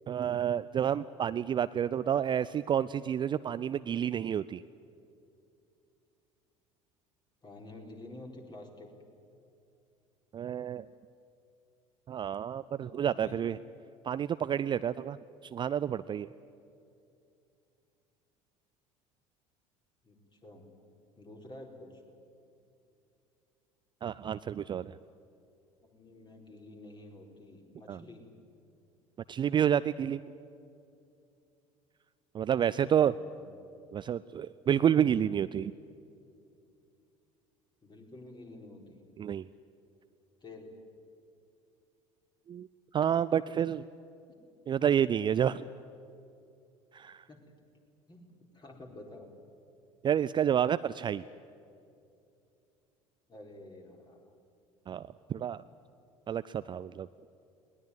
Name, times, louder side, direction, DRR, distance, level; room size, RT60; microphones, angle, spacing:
voice 1, 0.1-4.6 10.3-10.9 12.1-13.6 14.0-15.2 15.5-16.3 24.0-25.0 27.9-28.0 29.3-30.2 32.3-33.1 33.9-35.7 39.2-39.4 42.5-42.7 42.9-43.8 44.7-45.7 46.9-47.2 50.0-51.2 54.9-55.6 56.3-57.1, right 9 dB, 25° right, 15 dB, 0.4 m, -29 dB
voice 2, 7.4-8.9 13.1-13.4 20.0-20.7 21.1-22.0 25.8-28.3 32.8-33.5 37.8-39.0 40.4-40.8 47.3-47.5 48.1-48.3 48.5-49.3 53.3-54.3, left 2 dB, 25° left, 1 dB, 4.4 m, -50 dB
20.5 x 19.5 x 9.6 m, 2.6 s
figure-of-eight pair, 65°, 18 cm